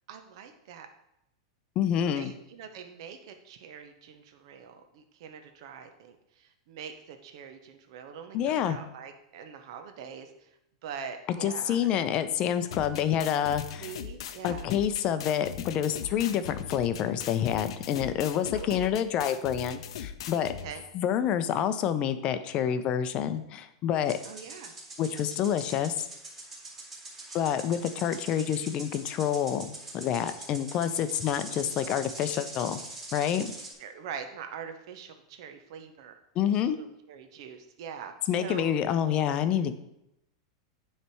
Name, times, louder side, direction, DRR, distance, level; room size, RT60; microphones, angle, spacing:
voice 1, 0.1-0.9 2.1-10.5 10.8-11.9 13.8-14.7 18.5-18.9 20.6-20.8 24.2-24.7 33.8-36.1 36.5-39.0, right 7 dB, 65° right, 6 dB, 0.7 m, -43 dB
voice 2, 1.8-2.3 8.3-8.8 11.4-13.9 14.4-20.5 20.9-24.2 25.0-26.0 27.3-32.8 33.1-33.5 36.4-36.8 38.3-39.7, left 9 dB, 35° left, 11 dB, 0.5 m, -28 dB
sound 1, 12.7-20.7, left 8 dB, 80° left, 0.5 m, -40 dB
sound 2, 24.0-33.7, right 2 dB, 20° right, 2.5 m, -43 dB
9.6 x 3.3 x 4.5 m, 0.83 s
supercardioid pair, 145°, 3 cm